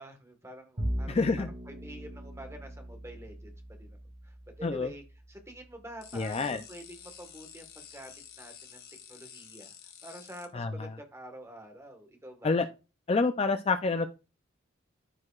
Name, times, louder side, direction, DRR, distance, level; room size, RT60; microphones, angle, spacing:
voice 1, 0.0-4.0 4.2-8.8 9.1-9.7 10.0-12.6, right 1 dB, 15° right, 5 dB, 1.5 m, -47 dB
Bowed string instrument, 0.8-7.2, equal, 50° right, 2.6 m, -41 dB
voice 2, 1.1-1.5 4.6-4.9 6.1-6.6 10.5-10.9 12.4-12.7 13.1-14.1, left 3 dB, 30° left, 9 dB, 0.4 m, -27 dB
sound 1, 6.0-10.5, left 9 dB, 50° left, 1.7 m, -50 dB
14.0 x 4.8 x 2.4 m, 0.30 s
head